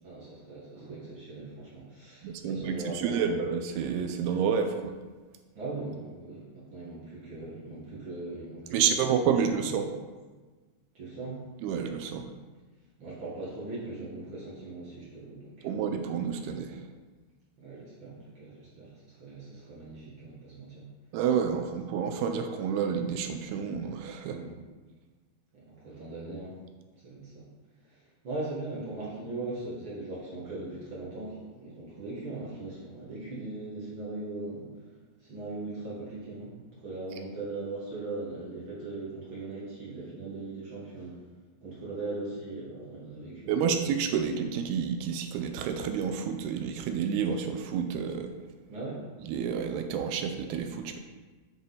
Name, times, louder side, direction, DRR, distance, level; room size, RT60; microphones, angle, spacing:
voice 1, 0.0-3.3 5.5-8.9 9.3-9.7 10.9-11.4 13.0-15.8 17.6-20.9 24.2-24.5 25.5-26.5 27.0-27.4 27.8-28.0 28.2-34.7 35.2-36.6 36.8-41.2 41.6-43.9 48.7-49.0, right 2 dB, 50° right, -7 dB, 1.4 m, -39 dB
voice 2, 2.2-4.9 8.7-9.9 11.6-12.2 15.6-16.9 21.1-24.4 43.5-48.3 49.2-51.0, right 7 dB, 80° right, 6 dB, 2.4 m, -29 dB
8.6 x 5.6 x 4.0 m, 1.3 s
omnidirectional pair, 4.8 m